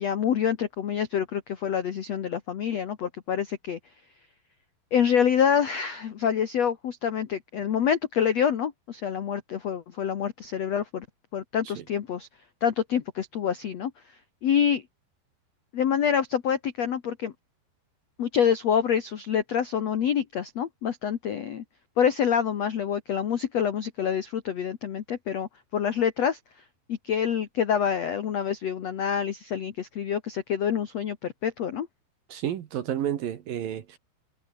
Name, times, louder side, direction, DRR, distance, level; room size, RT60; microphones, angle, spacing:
voice 1, 0.0-3.8 4.9-11.0 11.3-12.3 12.6-13.9 14.4-14.8 15.7-17.3 18.2-21.6 22.0-26.4 26.9-31.9, left 8 dB, 75° left, 1.5 m, -26 dB
voice 2, 32.3-34.0, right 10 dB, 60° right, 2.8 m, -30 dB
omnidirectional pair, 5.3 m